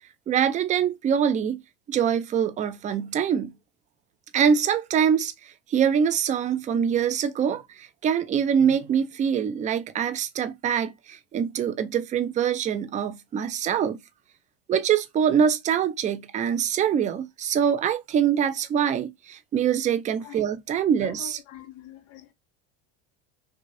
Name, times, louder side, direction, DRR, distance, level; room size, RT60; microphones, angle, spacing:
voice 1, 0.3-1.6 1.9-3.5 4.3-14.0 14.7-21.4, right 8 dB, 20° right, 0.3 m, -24 dB
voice 2, 21.0-22.3, left 12 dB, 65° left, 0.9 m, -44 dB
3.3 x 2.5 x 2.5 m
supercardioid pair, 105°, 36 cm